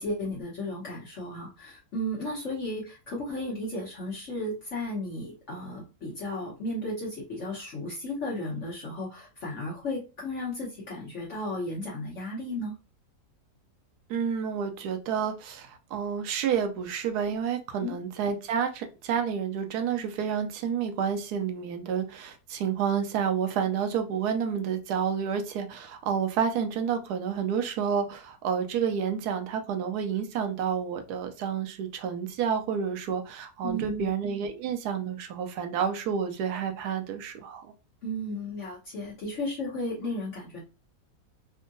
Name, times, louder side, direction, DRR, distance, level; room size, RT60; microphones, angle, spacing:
voice 1, 0.0-12.7 17.8-18.0 33.6-34.1 38.0-40.6, left 1 dB, 50° left, 1.2 m, -34 dB
voice 2, 14.1-37.7, right 7 dB, 75° right, 1.1 m, -29 dB
3.6 x 2.1 x 2.5 m
omnidirectional pair, 1.8 m